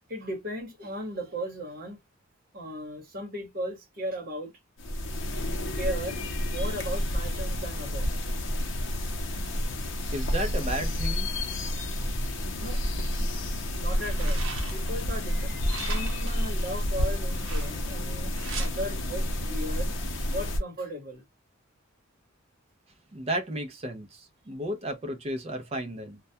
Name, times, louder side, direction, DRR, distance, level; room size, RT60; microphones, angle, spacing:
voice 1, 0.1-2.0 2.5-4.5 5.7-6.2 6.5-8.2 12.6-12.8 13.8-15.6 15.9-19.9 20.3-21.2, equal, 45° right, 0.9 m, -36 dB
sound 1, 4.8-20.6, left 1 dB, 65° left, 0.6 m, -30 dB
voice 2, 10.1-11.3 23.1-26.2, right 1 dB, 30° right, 0.4 m, -33 dB
sound 2, 12.7-13.1 13.8-15.0 15.7-16.4 17.3-18.0 18.3-18.7, right 5 dB, 75° right, 0.8 m, -40 dB
2.2 x 2.2 x 2.6 m
head